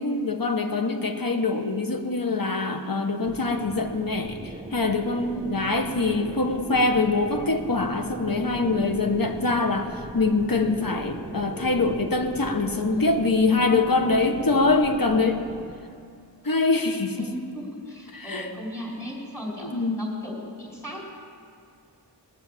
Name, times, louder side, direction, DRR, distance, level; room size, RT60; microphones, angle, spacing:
voice 1, 0.0-15.4 16.4-17.3 18.1-18.5 19.6-20.0, left 3 dB, 50° left, 5 dB, 1.2 m, -24 dB
sound 1, 3.2-15.7, right 1 dB, 10° right, 1.1 m, -40 dB
voice 2, 5.3-5.8 12.9-13.5 17.2-19.7 20.0-21.0, equal, 5° left, -4 dB, 4.6 m, -37 dB
20.0 x 7.0 x 7.3 m, 2.3 s
wide cardioid pair, 40°, 43 cm